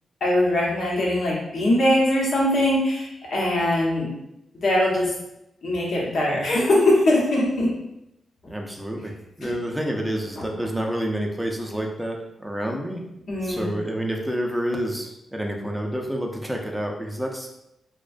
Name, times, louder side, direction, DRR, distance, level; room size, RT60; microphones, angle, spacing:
voice 1, 0.2-4.1 4.6-5.1 5.6-7.7 9.4-9.5 10.4-10.5 13.3-13.7, left 1 dB, 65° left, -4 dB, 0.8 m, -21 dB
voice 2, 8.4-9.1 9.4-13.0 13.4-17.5, equal, 5° right, 1 dB, 0.5 m, -28 dB
2.3 x 2.2 x 2.4 m, 0.85 s
cardioid pair, 65°, 0 cm